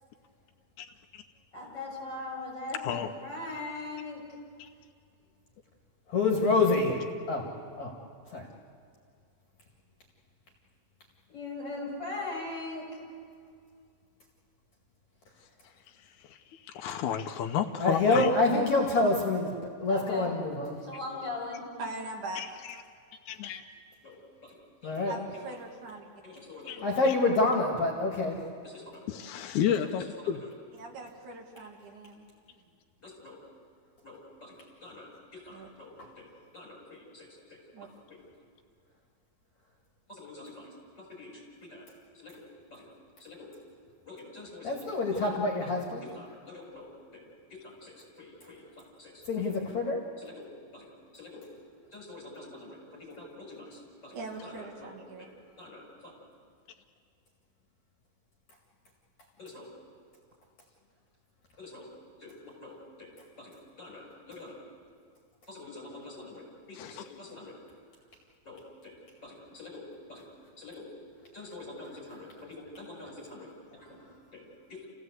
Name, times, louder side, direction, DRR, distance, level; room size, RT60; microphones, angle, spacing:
voice 1, 1.5-4.2 11.3-12.9 19.9-20.3 20.9-21.6 24.0-25.1 26.2-26.9 28.6-29.0 29.8-30.0 30.3-30.5 33.0-33.4 34.0-37.6 40.1-41.9 42.1-42.9 43.2-43.5 44.1-45.3 45.6-45.7 46.0-48.6 49.0-49.5 50.2-51.5 51.9-55.3 55.6-56.1 59.4-59.7 61.6-61.9 62.2-64.6 65.5-67.6 68.4-68.9 69.2-70.3 70.6-70.9 71.3-74.9, left 2 dB, 30° left, -1 dB, 7.6 m, -44 dB
voice 2, 6.1-7.0 7.3-7.5 7.8-7.9 8.3-8.4 17.8-19.5 19.8-20.7 24.8-25.1 26.8-28.4 44.6-46.1 49.3-50.0, left 3 dB, 55° left, 0 dB, 3.2 m, -26 dB
voice 3, 16.0-18.6 22.4-22.5 23.3-23.6 26.7-26.8 27.0-27.1 29.1-30.4 66.8-67.2, left 8 dB, 75° left, 5 dB, 1.9 m, -32 dB
voice 4, 21.8-22.4 25.1-26.1 30.8-32.6 35.5-35.7 37.7-37.9 54.1-55.3, right 2 dB, 60° right, 0 dB, 3.6 m, -41 dB
28.5 x 16.5 x 8.1 m, 2.3 s
omnidirectional pair, 4.2 m